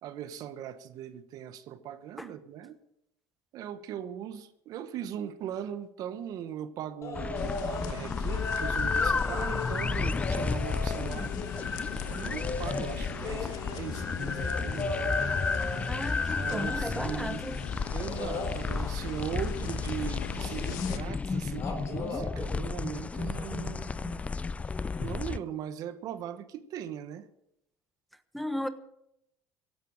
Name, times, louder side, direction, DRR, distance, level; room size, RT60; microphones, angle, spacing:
voice 1, 0.0-2.7 3.5-11.3 12.0-15.2 16.4-17.4 17.9-24.2 25.0-27.2, right 9 dB, 60° right, 12 dB, 1.3 m, -39 dB
sound 1, 7.0-7.9 8.3-11.8 12.3-17.2 18.1-18.6 20.4-20.5 20.8-21.3 21.5-22.3 23.6-23.7, left 3 dB, 45° left, 3.9 m, -38 dB
sound 2, 7.1-25.4, left 4 dB, 20° left, 0.5 m, -32 dB
sound 3, 7.4-21.0, left 10 dB, 75° left, 1.3 m, -41 dB
voice 2, 15.9-17.5 28.3-28.7, equal, ahead, 10 dB, 1.2 m, -35 dB
16.0 x 11.5 x 6.7 m, 0.79 s
supercardioid pair, 105°, 7 cm